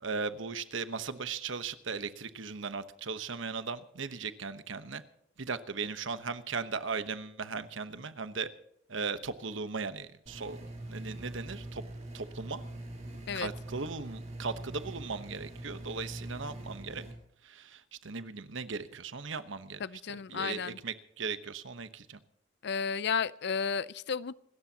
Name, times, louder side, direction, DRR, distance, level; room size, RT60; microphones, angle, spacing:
voice 1, 0.0-5.0 5.4-8.5 8.9-11.8 12.1-12.6 13.3-17.1 17.4-19.8 20.3-22.2, right 4 dB, 65° right, 1.1 m, -37 dB
sound 1, 10.3-17.1, right 1 dB, 35° right, 4.3 m, -43 dB
voice 2, 19.8-20.8 22.6-24.3, left 6 dB, 55° left, 0.5 m, -33 dB
27.0 x 13.5 x 2.9 m
head